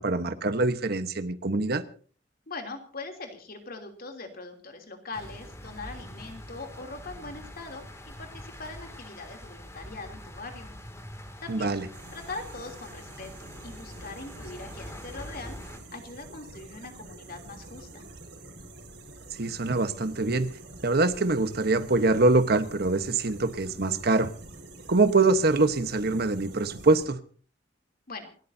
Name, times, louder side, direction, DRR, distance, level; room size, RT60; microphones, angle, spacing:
voice 1, 0.0-1.8 11.5-11.8 19.4-20.5 20.8-24.3 24.9-27.2, right 3 dB, 60° right, 1.2 m, -24 dB
voice 2, 2.5-10.7 11.4-11.7 12.1-18.0 28.1-28.3, left 3 dB, 55° left, 3.1 m, -41 dB
sound 1, 5.1-15.8, equal, 15° left, 2.4 m, -44 dB
sound 2, 11.9-27.1, right 2 dB, 80° right, 5.3 m, -47 dB
28.5 x 13.5 x 2.8 m
head